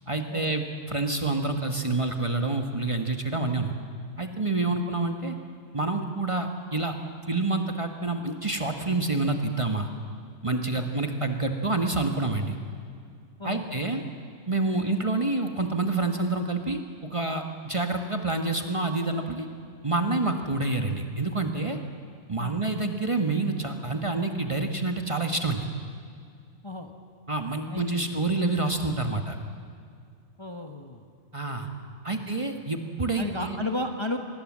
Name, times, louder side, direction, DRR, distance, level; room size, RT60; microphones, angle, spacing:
voice 1, 0.1-3.7 4.2-5.3 5.7-6.9 7.3-9.9 10.4-12.6 13.4-14.0 14.5-16.8 17.1-19.5 19.8-21.8 22.3-25.6 27.3-29.4 31.3-31.7 32.0-33.6, right 3 dB, 25° right, 5 dB, 1.4 m, -27 dB
voice 2, 27.7-28.2 30.4-31.0 32.1-32.3 33.2-34.2, left 2 dB, 20° left, 4 dB, 1.2 m, -34 dB
25.5 x 19.5 x 7.5 m, 2.3 s
omnidirectional pair, 1.4 m